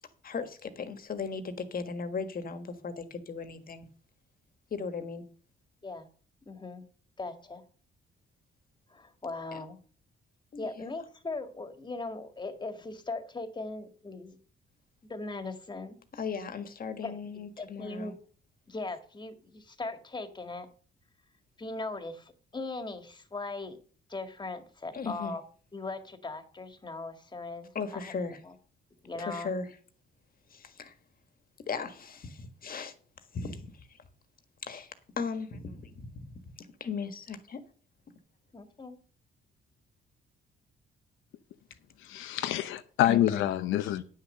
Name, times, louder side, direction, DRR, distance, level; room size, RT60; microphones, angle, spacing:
voice 1, 0.2-3.9 4.7-5.2 9.5-9.6 10.5-10.9 16.1-18.1 24.9-25.3 27.7-28.4 29.2-29.7 30.5-30.9 31.7-32.9 33.3-34.0 34.6-34.9 35.2-36.4 36.8-37.6 43.1-43.5, left 5 dB, 45° left, 1.6 m, -37 dB
voice 2, 6.5-6.9 7.2-7.6 8.9-9.8 10.6-14.4 15.0-16.0 17.0-17.2 17.6-18.2 18.7-20.7 21.6-23.8 24.1-25.4 25.7-28.1 28.4-28.5 29.0-29.5 38.5-39.0, left 3 dB, 20° left, 1.8 m, -39 dB
voice 3, 42.0-44.0, left 12 dB, 90° left, 0.7 m, -27 dB
9.6 x 6.6 x 6.6 m
cardioid pair, 90°, 20 cm